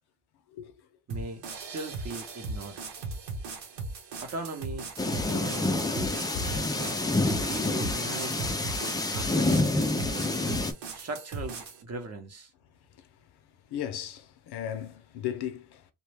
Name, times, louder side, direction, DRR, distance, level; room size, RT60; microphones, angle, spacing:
voice 1, 1.1-2.8 4.2-6.0 6.4-7.1 7.4-9.6 10.9-12.5, right 2 dB, 40° right, 0.8 m, -40 dB
sound 1, 1.1-11.8, right 3 dB, 90° right, 1.0 m, -38 dB
sound 2, 5.0-10.7, left 2 dB, 10° left, 0.3 m, -28 dB
voice 2, 6.3-6.7 13.0-13.1 13.7-15.9, left 9 dB, 65° left, 0.6 m, -36 dB
3.0 x 2.2 x 3.2 m
cardioid pair, 110°, 42 cm